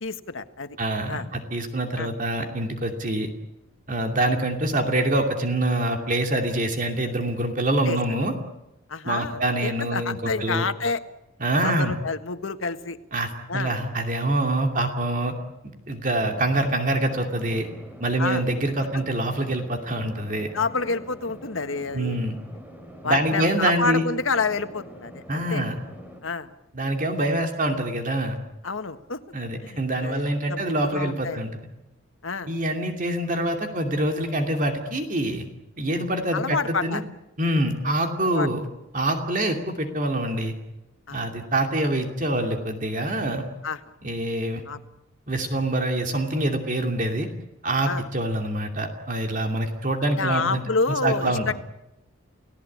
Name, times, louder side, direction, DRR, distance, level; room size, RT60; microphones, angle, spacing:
voice 1, 0.0-0.8 1.1-1.2 2.0-2.1 7.8-8.0 8.9-11.0 11.6-13.0 13.5-13.7 18.2-18.4 20.5-22.2 23.0-25.6 26.2-26.5 28.6-29.2 29.6-31.4 32.2-32.5 36.3-37.0 37.8-38.0 38.2-38.5 41.1-41.2 43.6-43.8 44.7-44.8 47.8-48.0 50.2-51.5, left 4 dB, 85° left, 9 dB, 1.6 m, -28 dB
voice 2, 0.8-3.3 3.9-8.3 9.0-10.7 11.4-11.9 13.1-15.3 15.9-17.7 18.0-20.5 21.9-22.4 23.0-24.0 25.3-25.8 26.7-28.4 29.3-31.6 32.5-35.4 35.8-37.0 37.4-38.7 38.9-40.5 41.1-43.4 44.0-44.6 45.3-47.3 47.6-50.6 51.0-51.5, right 1 dB, 40° right, 4 dB, 2.6 m, -25 dB
sound 1, 16.2-26.2, equal, 10° right, 3.7 m, -45 dB
30.0 x 18.0 x 8.6 m, 0.92 s
head